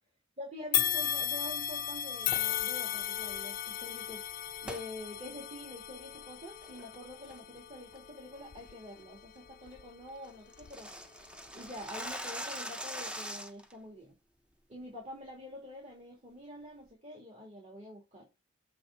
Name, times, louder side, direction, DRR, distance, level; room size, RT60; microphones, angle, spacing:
voice 1, 0.4-4.2 4.6-10.9 11.5-14.1 14.7-18.3, left 1 dB, 35° right, 2.3 m, -46 dB
sound 1, 0.7-10.0 10.6-10.7 11.7-11.8, left 11 dB, 45° left, 0.3 m, -36 dB
sound 2, 2.2-2.6 4.7-4.9 5.3-5.4 6.0-6.2 6.6-7.0 7.3-7.6 7.9-8.0 8.4-8.7 9.0-9.1 9.4-9.5 9.7-9.8 10.1-13.7, equal, 5° right, 0.7 m, -42 dB
7.7 x 3.4 x 5.7 m
head